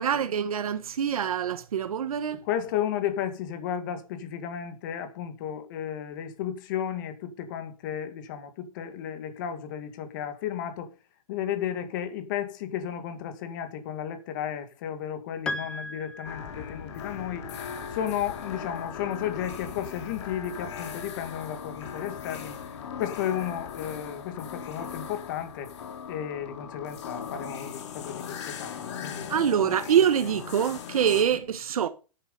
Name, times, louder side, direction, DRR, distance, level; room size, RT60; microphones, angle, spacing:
voice 1, 0.0-2.4 29.3-31.9, right 8 dB, 90° right, 1.4 m, -25 dB
voice 2, 2.3-10.9 11.3-17.5 17.9-25.7 26.1-29.3 31.3-31.4, left 9 dB, 35° left, 2.2 m, -33 dB
Piano, 15.5-17.1, left 2 dB, 5° left, 0.5 m, -37 dB
sound 1, 16.2-31.2, left 7 dB, 55° left, 2.8 m, -39 dB
10.5 x 9.4 x 5.4 m
hypercardioid pair, 175°, 18 cm